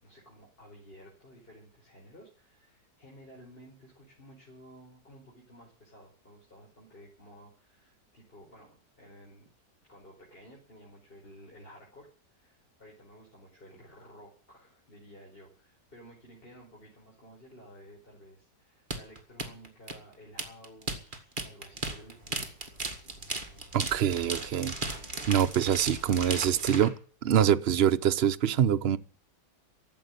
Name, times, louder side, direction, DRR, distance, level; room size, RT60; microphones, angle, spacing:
voice 1, 0.0-9.5 9.9-22.5, equal, 30° left, 5.3 m, -53 dB
sound 1, 18.9-26.9, right 2 dB, 30° right, 2.2 m, -36 dB
voice 2, 23.7-24.8 25.3-26.9 27.2-29.0, right 9 dB, 50° right, 0.8 m, -25 dB
14.0 x 8.3 x 9.8 m
omnidirectional pair, 1.8 m